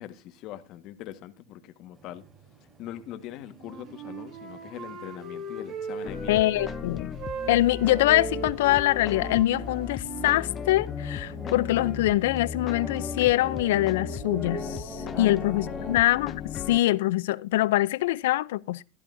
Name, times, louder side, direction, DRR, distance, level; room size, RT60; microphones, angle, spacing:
voice 1, 0.0-2.2 2.8-6.3 15.1-16.0, left 12 dB, 50° left, 1.5 m, -41 dB
sound 1, 1.9-16.1, right 3 dB, 20° right, 4.0 m, -44 dB
Wind instrument woodwind instrument, 3.5-6.8 7.1-10.9, right 4 dB, 40° right, 3.9 m, -39 dB
sound 2, 6.0-16.8, left 8 dB, 30° left, 0.6 m, -36 dB
voice 2, 6.3-7.1 7.5-16.4 16.7-18.8, left 16 dB, 75° left, 0.5 m, -24 dB
15.5 x 12.0 x 2.7 m
supercardioid pair, 125°, 0 cm